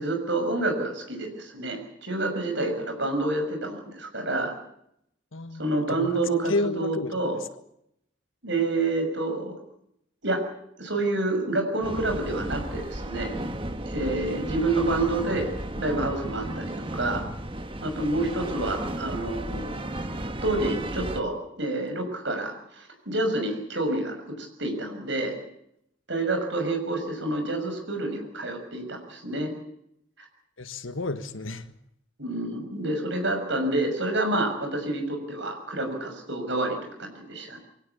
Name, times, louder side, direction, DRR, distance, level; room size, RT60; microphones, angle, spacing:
voice 1, 0.0-4.5 5.6-7.4 8.4-9.6 10.2-10.4 10.8-13.3 13.9-17.2 17.8-19.7 20.4-25.3 26.1-29.5 32.2-37.6, right 2 dB, 65° right, 6.3 m, -28 dB
voice 2, 5.3-6.1 6.4-7.4 30.6-31.7, left 2 dB, 80° left, 1.5 m, -31 dB
sound 1, 11.8-21.2, right 1 dB, 25° right, 1.4 m, -34 dB
23.5 x 17.0 x 8.3 m
head